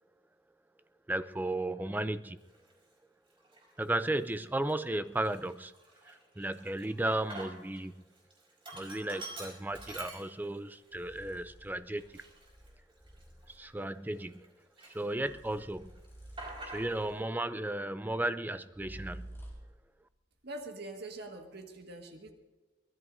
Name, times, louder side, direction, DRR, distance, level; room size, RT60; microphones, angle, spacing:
voice 1, 1.1-2.4 3.8-5.7 6.1-7.9 8.7-12.2 13.5-14.5 14.9-15.9 16.6-19.3, right 1 dB, 10° right, 12 dB, 0.5 m, -34 dB
Sink (filling or washing), 2.5-2.7 3.4-3.9 4.3-4.4 4.7-7.8 8.1-10.7 11.1-11.2 11.9-14.5 14.8-15.5 15.8-17.2, right 2 dB, 30° right, 4.7 m, -47 dB
sound 1, 9.7-10.0 10.9-13.9 15.1-17.4 18.7-19.8, right 1 dB, 15° left, 4.2 m, -51 dB
voice 2, 20.4-22.3, right 2 dB, 60° right, 3 dB, 1.8 m, -44 dB
23.5 x 19.0 x 2.7 m, 1.2 s
head